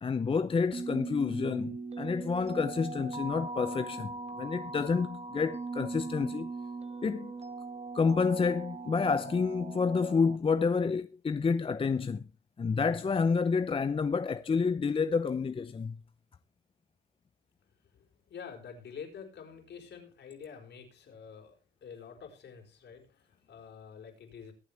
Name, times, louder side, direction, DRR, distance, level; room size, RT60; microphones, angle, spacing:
voice 1, 0.0-6.5 7.0-7.3 7.9-12.3 12.6-16.0, left 5 dB, 25° left, 0.7 m, -29 dB
sound 1, 0.7-10.4, right 3 dB, 30° right, 1.4 m, -40 dB
voice 2, 17.8-24.5, left 6 dB, 60° left, 4.7 m, -48 dB
23.0 x 7.8 x 3.4 m
cardioid pair, 90°, 20 cm